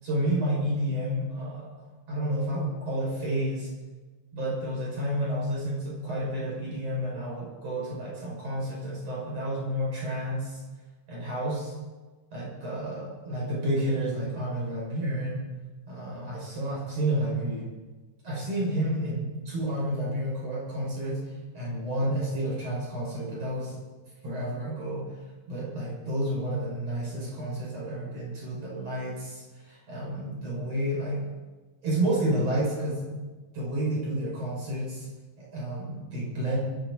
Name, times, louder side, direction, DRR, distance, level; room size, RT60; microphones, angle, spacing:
voice 1, 0.0-3.7 4.3-10.6 11.1-11.7 12.3-15.4 15.9-17.7 18.2-23.8 24.2-25.0 25.5-31.2 31.8-33.0 33.5-35.1 35.4-36.6, right 1 dB, 35° right, -4 dB, 7.0 m, -30 dB
22.5 x 14.0 x 4.2 m, 1.3 s
omnidirectional pair, 4.9 m